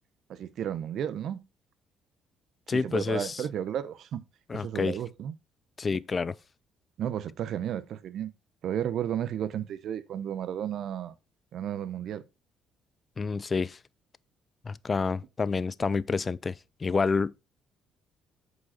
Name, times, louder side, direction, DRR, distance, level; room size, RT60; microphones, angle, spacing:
voice 1, 0.3-1.4 2.7-4.2 4.5-5.3 7.0-8.3 8.6-11.2 11.5-12.2, right 10 dB, 65° right, 0.8 m, -33 dB
voice 2, 2.7-3.4 4.5-5.0 5.8-6.3 13.2-13.8 14.6-17.3, left 4 dB, 35° left, 0.4 m, -28 dB
8.2 x 5.2 x 4.2 m
supercardioid pair, 65°, 0 cm